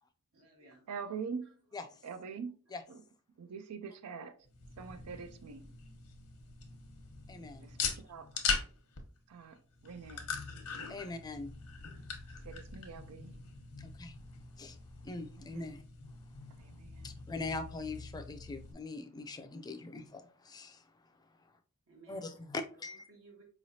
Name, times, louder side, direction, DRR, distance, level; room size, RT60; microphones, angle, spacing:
voice 1, 0.3-1.1 1.4-1.8 2.7-2.8 21.9-22.5 22.9-23.4, right 3 dB, 65° right, 1.0 m, -60 dB
voice 2, 0.9-1.5 2.0-2.6 2.9-3.0 3.4-4.3 4.8-5.7 7.6-8.3 9.3-9.6 9.8-10.3 10.7-11.0 12.4-13.3 15.2-15.7 16.6-17.1, right 6 dB, 85° right, 0.4 m, -44 dB
sound 1, 4.5-18.7, left 5 dB, 85° left, 0.9 m, -42 dB
voice 3, 7.3-7.7 10.9-11.5 13.8-14.1 14.6-14.8 15.0-15.8 17.0-20.8 22.1-23.0, left 3 dB, 20° left, 0.3 m, -42 dB
4.7 x 3.1 x 2.7 m
head